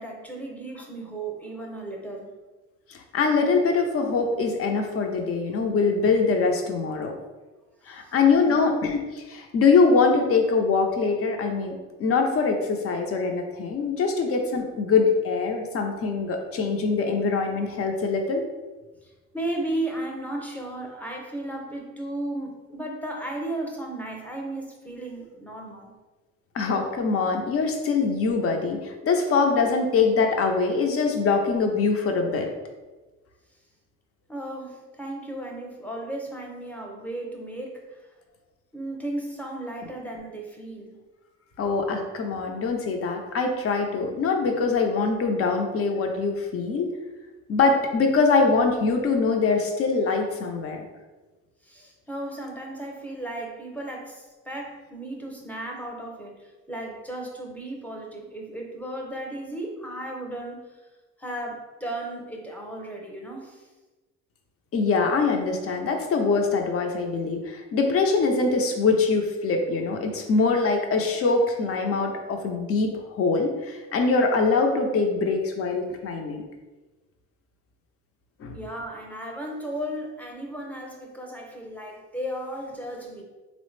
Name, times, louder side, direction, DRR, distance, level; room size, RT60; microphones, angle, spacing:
voice 1, 0.0-2.3 7.9-8.5 19.0-25.9 34.3-38.1 38.7-41.0 51.6-60.8 61.2-63.7 78.5-83.2, right 1 dB, 5° left, 0 dB, 0.6 m, -35 dB
voice 2, 2.9-7.2 7.9-18.4 26.5-32.5 41.6-46.9 47.5-50.8 64.7-76.4 78.4-78.5, left 4 dB, 50° left, 4 dB, 0.5 m, -23 dB
3.4 x 2.0 x 3.1 m, 1.2 s
cardioid pair, 90°, 30 cm